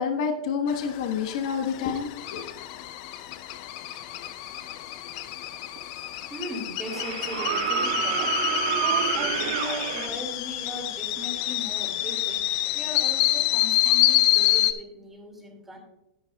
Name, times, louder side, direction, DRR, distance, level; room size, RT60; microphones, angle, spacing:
voice 1, 0.0-2.4, left 6 dB, 55° left, 4 dB, 1.2 m, -28 dB
sound 1, 0.7-14.7, left 14 dB, 40° left, 0.6 m, -27 dB
sound 2, 5.8-5.9 6.9-10.1 11.9-12.0, right 8 dB, 60° right, 1.5 m, -27 dB
voice 2, 6.3-8.4 8.8-12.5 12.7-15.8, equal, 5° right, 1 dB, 2.4 m, -38 dB
11.0 x 11.0 x 2.3 m, 0.91 s
supercardioid pair, 155°, 4 cm